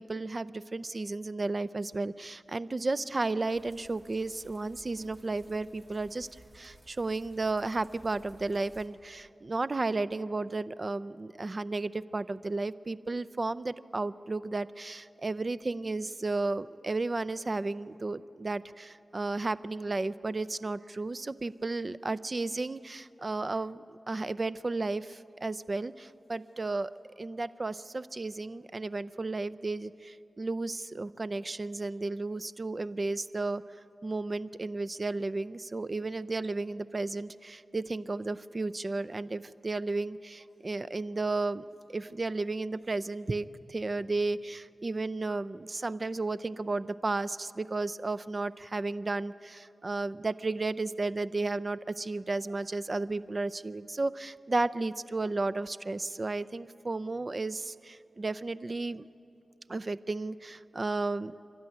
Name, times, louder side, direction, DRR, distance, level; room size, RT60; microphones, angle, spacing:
voice 1, 0.0-6.3 6.5-26.9 27.2-33.6 34.0-41.6 41.9-59.1 59.7-61.3, right 3 dB, 40° right, 15 dB, 0.6 m, -33 dB
sound 1, 3.5-8.9, right 1 dB, 20° right, 2.7 m, -57 dB
30.0 x 12.5 x 9.5 m, 2.7 s
cardioid pair, 60°, 0 cm